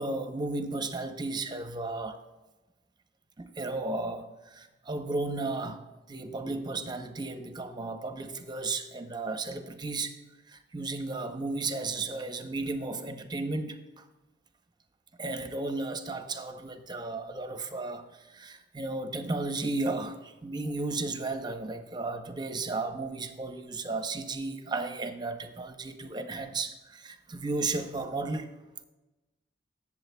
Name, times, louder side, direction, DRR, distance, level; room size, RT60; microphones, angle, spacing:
voice 1, 0.0-2.2 3.4-5.8 6.1-10.2 10.5-14.0 15.2-28.5, right 3 dB, 25° right, 7 dB, 0.7 m, -34 dB
16.0 x 7.1 x 2.2 m, 1.1 s
head